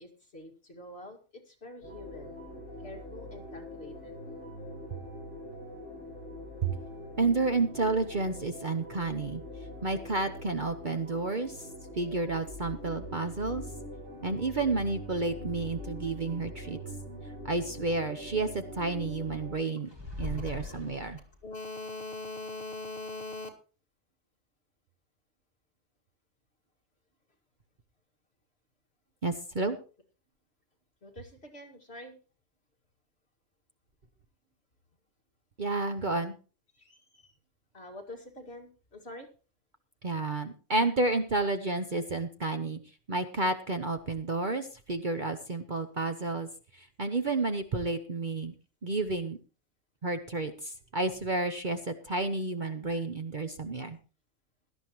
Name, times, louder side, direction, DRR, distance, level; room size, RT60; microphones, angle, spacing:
voice 1, 0.0-2.3 2.8-4.2 16.7-16.8 21.4-23.5 31.0-32.2 36.7-37.4 37.7-39.3, left 2 dB, 50° left, 1 dB, 2.5 m, -44 dB
sound 1, 1.8-19.5, equal, 60° right, 7.8 m, -43 dB
voice 2, 7.2-9.4 9.8-11.7 11.9-13.6 14.2-16.8 17.4-19.9 20.2-21.2 29.2-29.8 35.6-36.3 40.0-42.8 43.1-48.5 48.8-49.4 50.0-54.0, right 3 dB, 40° right, 7 dB, 0.9 m, -31 dB
sound 2, 19.9-21.5, left 2 dB, 20° right, 2.1 m, -39 dB
17.0 x 12.0 x 3.1 m, 0.35 s
omnidirectional pair, 1.4 m